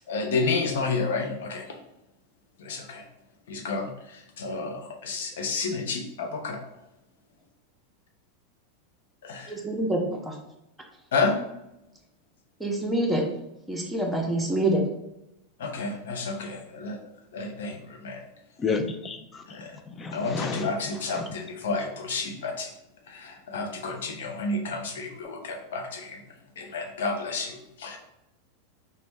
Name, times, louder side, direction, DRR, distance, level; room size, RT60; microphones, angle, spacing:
voice 1, 0.1-1.8 2.6-3.0 3.5-6.6 9.2-9.6 11.1-11.3 15.6-17.0 17.3-18.2 19.5-19.8 20.1-22.7 23.1-26.2 26.6-28.0, left 3 dB, 70° left, 3 dB, 0.6 m, -30 dB
voice 2, 9.5-10.0 10.2-10.3 12.6-13.2 13.7-14.8, right 1 dB, 5° right, -2 dB, 0.7 m, -26 dB
voice 3, 18.6-20.7 21.1-21.3, left 4 dB, 25° left, 6 dB, 0.4 m, -31 dB
2.9 x 2.2 x 3.4 m, 0.88 s
hypercardioid pair, 95°, 0 cm